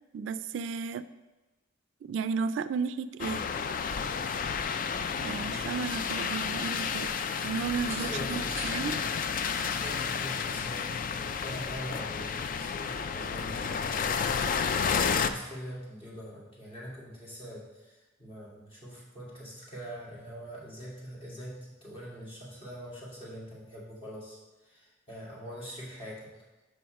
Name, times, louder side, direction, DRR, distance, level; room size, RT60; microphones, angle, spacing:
voice 1, 0.1-1.1 2.0-3.5 5.2-7.1 7.4-9.0, right 5 dB, 75° right, 12 dB, 0.3 m, -33 dB
sound 1, 3.2-15.3, left 6 dB, 45° left, 0.4 m, -31 dB
voice 2, 7.7-8.5 9.5-26.3, equal, 30° left, -6 dB, 2.6 m, -43 dB
sound 2, 7.8-8.8 10.7-10.9, right 2 dB, 15° right, 1.6 m, -48 dB
5.8 x 5.6 x 5.2 m, 1.1 s
head